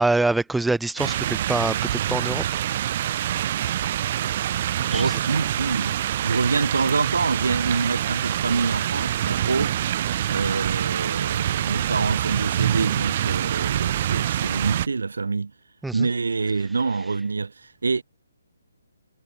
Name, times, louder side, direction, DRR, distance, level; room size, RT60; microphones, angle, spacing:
voice 1, 0.0-2.4 4.9-5.0 15.8-16.1, right 2 dB, 5° right, 0.6 m, -24 dB
sound 1, 1.0-14.9, right 11 dB, 35° right, 0.9 m, -25 dB
voice 2, 4.9-6.0 6.2-9.9 10.3-15.5 15.9-18.0, right 4 dB, 65° right, 1.4 m, -26 dB
figure-of-eight pair, 135°, 0 cm